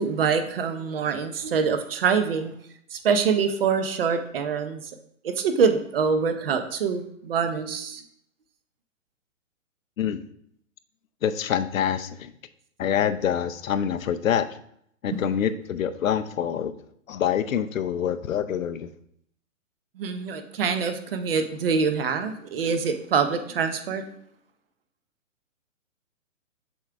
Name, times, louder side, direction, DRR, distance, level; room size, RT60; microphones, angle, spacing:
voice 1, 0.0-2.5 2.9-4.8 5.2-8.0 15.1-15.2 20.0-24.0, right 6 dB, 45° right, 8 dB, 0.7 m, -25 dB
voice 2, 11.2-12.3 12.8-14.5 15.0-16.7 17.1-18.9, left 9 dB, 75° left, 11 dB, 0.7 m, -26 dB
7.2 x 3.7 x 4.6 m, 0.68 s
hypercardioid pair, 160°, 40 cm